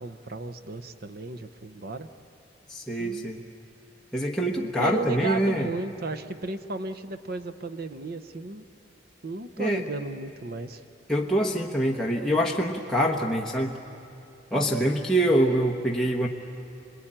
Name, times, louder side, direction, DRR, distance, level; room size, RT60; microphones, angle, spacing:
voice 1, 0.0-2.1 3.0-3.3 4.6-8.6 9.2-10.8 14.8-14.9, right 3 dB, 55° right, 9 dB, 0.8 m, -35 dB
voice 2, 2.7-3.4 4.1-5.7 9.6-9.8 11.1-13.8 14.5-16.3, equal, 5° left, -2 dB, 1.1 m, -25 dB
27.0 x 21.0 x 8.9 m, 2.6 s
head